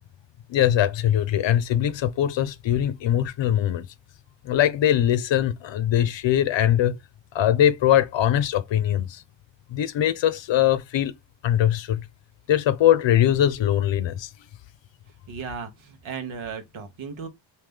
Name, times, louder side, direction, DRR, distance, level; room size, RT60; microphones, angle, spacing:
voice 1, 0.5-3.8 4.4-7.0 7.3-9.2 9.7-11.2 11.4-12.0 12.5-14.3, left 11 dB, 65° left, 0.7 m, -21 dB
voice 2, 15.1-17.3, right 6 dB, 80° right, 1.1 m, -36 dB
3.2 x 2.8 x 3.5 m
cardioid pair, 85°, 47 cm